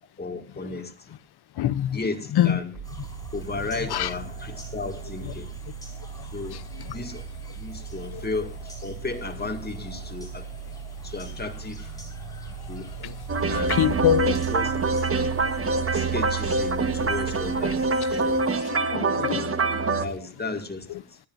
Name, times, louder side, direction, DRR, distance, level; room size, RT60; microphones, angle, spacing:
voice 1, 0.2-1.2 1.9-2.8 3.3-5.6 6.2-7.3 7.5-10.5 11.0-12.0 12.5-12.9 13.4-13.9 14.2-14.7 15.0-15.1 15.9-18.5 20.0-21.2, left 3 dB, 25° left, 2.1 m, -34 dB
voice 2, 1.6-2.0 2.4-2.6 3.9-4.1 13.0-13.1 13.8-14.3 18.7-20.0, left 11 dB, 85° left, 0.7 m, -24 dB
sound 1, 2.7-18.5, right 7 dB, 65° right, 3.3 m, -40 dB
sound 2, 2.8-18.6, equal, 10° left, 5.0 m, -44 dB
sound 3, 13.3-20.1, right 4 dB, 35° right, 1.4 m, -25 dB
26.5 x 10.5 x 2.6 m
wide cardioid pair, 120°, 38 cm